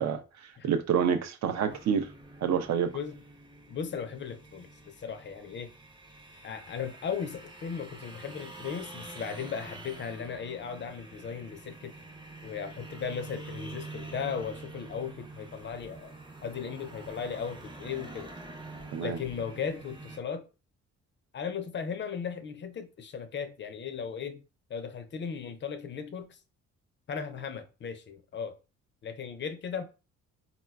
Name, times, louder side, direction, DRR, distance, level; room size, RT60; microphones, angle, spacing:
voice 1, 0.0-2.1 2.4-2.9 18.9-19.2, right 7 dB, 60° right, 0.5 m, -28 dB
sound 1, 1.7-20.2, right 2 dB, 15° right, 0.6 m, -46 dB
voice 2, 3.7-5.7 6.4-12.0 12.4-16.1 16.4-18.3 19.0-20.5 21.3-24.4 24.7-26.4 27.1-28.6 29.0-29.8, left 6 dB, 40° left, 0.4 m, -37 dB
3.8 x 2.1 x 2.3 m
cardioid pair, 90°, 30 cm